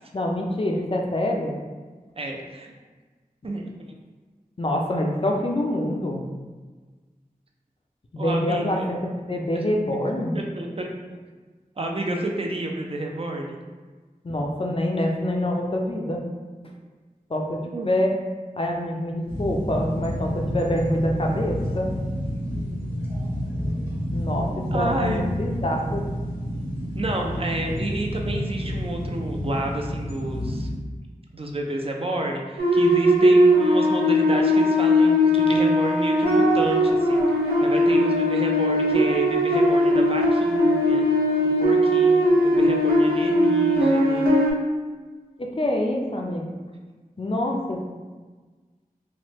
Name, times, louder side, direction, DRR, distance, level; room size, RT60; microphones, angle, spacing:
voice 1, 0.1-1.6 4.6-6.2 8.1-9.0 9.3-10.4 14.2-16.2 17.3-18.1 18.6-21.9 24.1-24.5 24.7-26.0 45.4-46.4 47.2-47.8, left 1 dB, 40° left, 0 dB, 0.4 m, -25 dB
voice 2, 2.2-2.7 3.4-3.9 8.2-8.9 10.3-10.8 11.1-11.2 11.8-13.6 17.6-17.9 22.5-22.8 24.5-25.3 26.9-30.7 31.3-37.2 37.6-41.0 41.6-44.3, right 1 dB, 40° right, 1 dB, 0.4 m, -30 dB
sound 1, 19.3-30.8, equal, 15° right, 0.8 m, -29 dB
sound 2, 32.6-44.5, equal, 80° right, 0.6 m, -19 dB
3.0 x 2.1 x 3.0 m, 1.4 s
wide cardioid pair, 60°, 15 cm